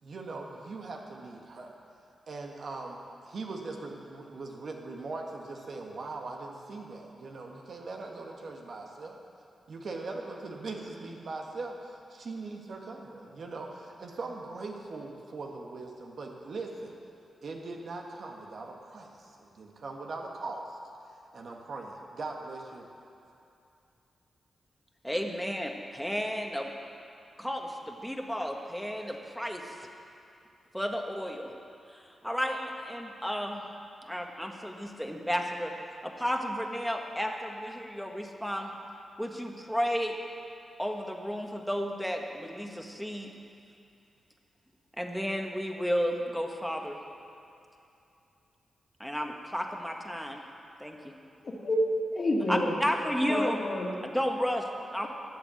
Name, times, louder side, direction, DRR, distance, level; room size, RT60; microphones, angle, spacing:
voice 1, 0.0-1.7 2.3-9.2 9.7-16.9 17.4-20.8 21.3-22.8, right 3 dB, 65° right, 1 dB, 1.6 m, -40 dB
voice 2, 25.0-26.7 27.4-29.9 30.7-31.5 31.9-33.6 34.0-35.8 36.0-38.7 39.2-40.2 40.8-43.3 45.0-47.0 49.0-50.4 50.8-51.1 52.5-53.6 54.0-55.1, equal, ahead, 2 dB, 1.6 m, -32 dB
voice 3, 51.4-51.8 52.1-52.8 53.2-54.0, left 1 dB, 50° left, -2 dB, 2.3 m, -28 dB
13.0 x 7.6 x 7.7 m, 2.7 s
supercardioid pair, 50°, 0 cm